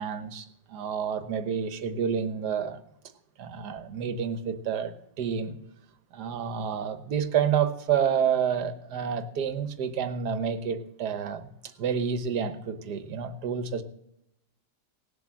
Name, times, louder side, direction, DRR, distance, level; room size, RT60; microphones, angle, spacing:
voice 1, 0.0-2.8 3.4-5.6 6.1-13.8, right 7 dB, 65° right, 11 dB, 1.6 m, -29 dB
18.0 x 7.7 x 7.5 m, 0.81 s
omnidirectional pair, 1.9 m